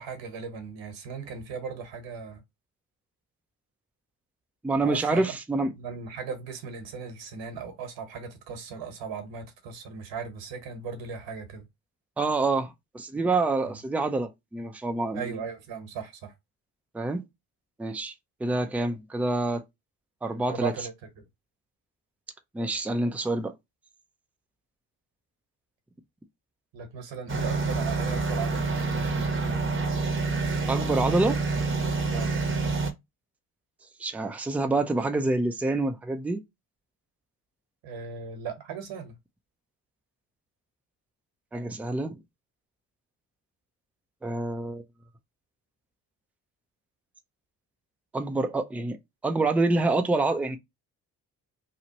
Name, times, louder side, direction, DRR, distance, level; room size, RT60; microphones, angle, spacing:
voice 1, 0.0-2.4 4.8-5.3 5.8-11.6 13.6-13.8 15.1-16.3 20.5-20.9 26.7-29.6 32.1-32.4 37.8-39.2, right 6 dB, 60° right, 1.2 m, -37 dB
voice 2, 4.6-5.7 12.2-15.4 16.9-17.2 17.8-18.1 18.4-19.6 20.2-20.7 22.5-23.5 30.7-31.4 34.0-36.4 41.5-42.1 44.2-44.8 48.1-49.0 49.2-50.6, right 2 dB, 5° right, 0.4 m, -27 dB
sound 1, 27.3-32.9, right 3 dB, 25° right, 0.8 m, -27 dB
3.0 x 2.4 x 2.8 m
hypercardioid pair, 45°, 49 cm